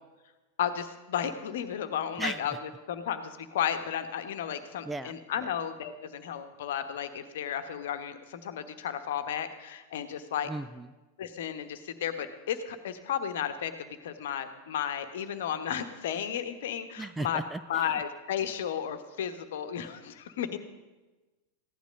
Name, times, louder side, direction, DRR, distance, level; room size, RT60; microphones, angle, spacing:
voice 1, 0.6-10.5 11.2-17.4 17.7-20.6, left 9 dB, 55° left, 9 dB, 1.2 m, -33 dB
voice 2, 4.8-5.2 10.5-10.9 17.0-17.8, right 2 dB, 10° right, 12 dB, 0.4 m, -35 dB
15.5 x 11.5 x 5.3 m, 1.2 s
figure-of-eight pair, 90°, 0 cm